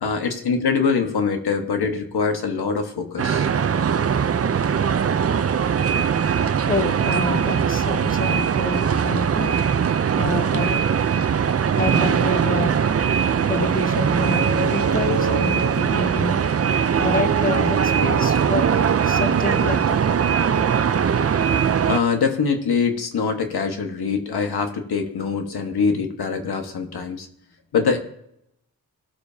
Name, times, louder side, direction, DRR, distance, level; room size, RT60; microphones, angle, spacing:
voice 1, 0.0-3.5 3.8-3.9 21.9-27.3 27.7-28.0, left 5 dB, 85° left, 5 dB, 1.5 m, -23 dB
sound 1, 3.2-22.0, right 7 dB, 40° right, 0.5 m, -20 dB
voice 2, 6.7-9.6 10.2-10.8 11.5-13.0 13.4-16.4 17.0-20.0, left 3 dB, 20° left, 8 dB, 1.0 m, -28 dB
18.0 x 6.8 x 2.8 m, 0.75 s
cardioid pair, 65°, 38 cm